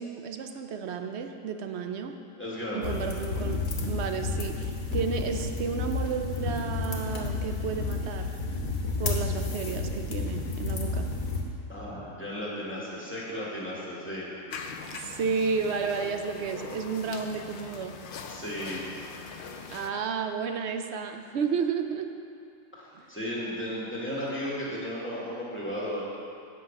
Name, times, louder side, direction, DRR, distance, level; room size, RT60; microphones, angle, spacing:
voice 1, 0.0-2.2 2.7-8.3 9.0-11.1 14.9-17.9 19.7-22.1 23.0-23.1, right 6 dB, 60° right, 6 dB, 0.8 m, -32 dB
voice 2, 2.4-2.9 11.7-14.3 18.3-18.8 22.7-26.0, equal, 10° left, -7 dB, 2.0 m, -35 dB
sound 1, 2.8-11.4, left 3 dB, 85° left, 1.5 m, -31 dB
sound 2, 14.5-19.9, left 5 dB, 55° left, 0.6 m, -41 dB
8.7 x 6.8 x 5.2 m, 2.5 s
omnidirectional pair, 1.4 m